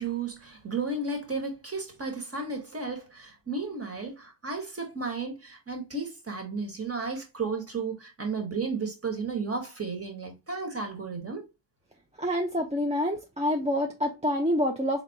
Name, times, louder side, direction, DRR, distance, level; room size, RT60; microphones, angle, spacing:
voice 1, 0.0-11.4, right 4 dB, 30° right, 1.6 m, -33 dB
voice 2, 12.2-15.0, equal, 15° right, 0.7 m, -27 dB
3.6 x 3.5 x 2.8 m
cardioid pair, 65°, 45 cm